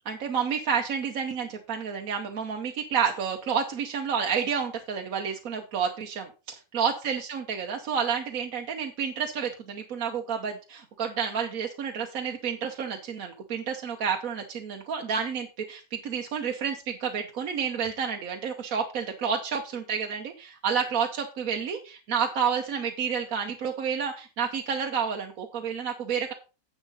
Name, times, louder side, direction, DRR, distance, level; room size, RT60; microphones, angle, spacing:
voice 1, 0.1-26.3, right 7 dB, 70° right, 3 dB, 1.3 m, -30 dB
10.5 x 7.3 x 4.0 m, 0.32 s
omnidirectional pair, 1.6 m